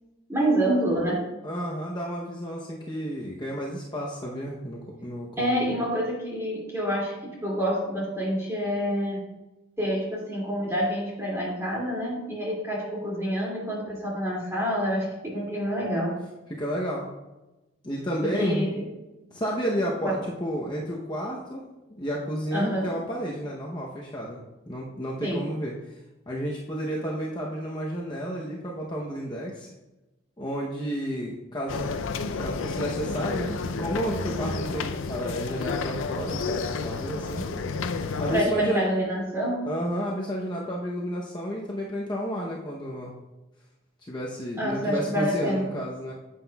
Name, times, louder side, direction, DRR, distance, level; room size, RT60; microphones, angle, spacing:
voice 1, 0.3-1.3 5.4-9.3 9.8-16.2 18.2-18.8 20.0-20.1 22.5-22.9 25.2-25.5 38.3-39.7 44.6-45.7, equal, 15° right, -4 dB, 2.3 m, -27 dB
voice 2, 1.4-5.6 16.5-17.1 17.8-18.6 19.3-21.6 21.9-24.4 24.7-25.7 26.3-29.7 30.4-31.9 32.4-37.5 38.2-38.9 39.7-43.1 44.0-46.1, equal, 25° left, -3 dB, 0.8 m, -31 dB
sound 1, 31.7-38.4, left 4 dB, 85° left, 0.5 m, -31 dB
9.6 x 7.8 x 2.3 m, 1.0 s
head